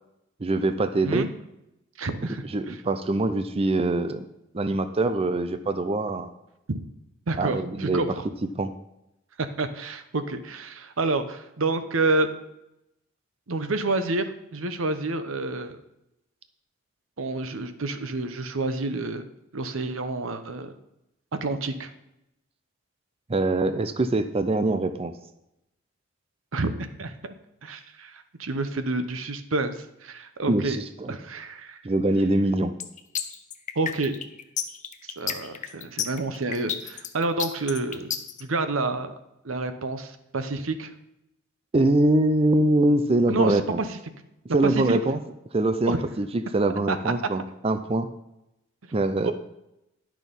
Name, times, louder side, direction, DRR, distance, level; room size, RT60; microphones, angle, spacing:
voice 1, 0.4-1.3 2.5-4.3 4.5-6.3 7.4-8.0 8.5-8.7 23.3-25.2 30.5-31.2 31.8-32.8 41.7-43.8 44.5-45.2 45.5-48.1 48.9-49.3, right 2 dB, 30° right, 10 dB, 0.5 m, -23 dB
voice 2, 2.0-2.8 6.7-6.8 7.3-8.1 9.6-12.3 13.5-15.8 17.2-19.2 19.5-20.7 21.3-21.9 26.5-27.3 27.6-30.8 31.1-31.8 33.7-34.2 35.0-38.1 38.4-39.1 39.4-40.9 43.3-43.9 44.6-45.0 45.9-46.0 46.9-47.1 49.2-49.3, right 2 dB, 90° right, 10 dB, 0.9 m, -29 dB
sound 1, 32.8-38.4, left 8 dB, 40° left, 0.7 m, -31 dB
10.5 x 6.2 x 5.3 m, 0.86 s
head